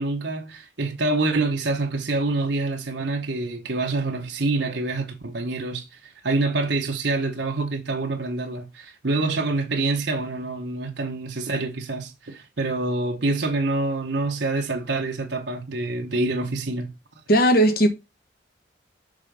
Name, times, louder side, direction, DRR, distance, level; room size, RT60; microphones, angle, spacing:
voice 1, 0.0-16.9, right 2 dB, 65° right, 1.1 m, -26 dB
voice 2, 17.3-17.9, right 1 dB, 50° left, 1.3 m, -17 dB
6.3 x 4.1 x 5.2 m
head